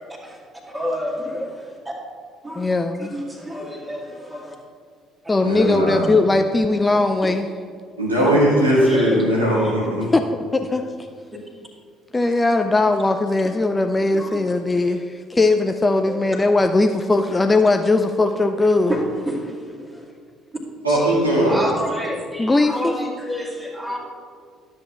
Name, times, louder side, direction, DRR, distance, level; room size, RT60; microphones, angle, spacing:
voice 1, 0.6-1.9 2.4-2.7 3.0-4.5 6.0-6.1 6.8-7.3 8.8-9.8 14.1-14.5 16.1-16.4 17.3-17.4 18.2-20.1 20.9-24.0, equal, 15° right, -3 dB, 2.0 m, -30 dB
voice 2, 2.6-3.1 5.3-7.5 10.1-10.2 10.5-10.8 12.1-18.9 22.4-22.9, left 2 dB, 15° left, 5 dB, 0.4 m, -19 dB
voice 3, 5.4-6.0 8.0-10.1 20.8-21.5, equal, 80° right, -5 dB, 1.7 m, -18 dB
13.0 x 7.7 x 2.3 m, 2.1 s
figure-of-eight pair, 50°, 0 cm